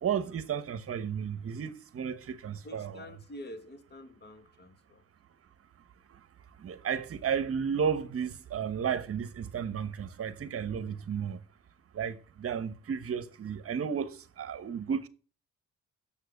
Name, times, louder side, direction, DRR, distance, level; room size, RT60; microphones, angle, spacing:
voice 1, 0.0-3.0 6.1-6.2 6.6-11.4 11.9-15.1, right 7 dB, 50° right, 1.1 m, -33 dB
voice 2, 2.6-5.0 8.2-8.3, left 1 dB, 35° left, 1.8 m, -47 dB
7.6 x 7.2 x 6.6 m
cardioid pair, 90°, 30 cm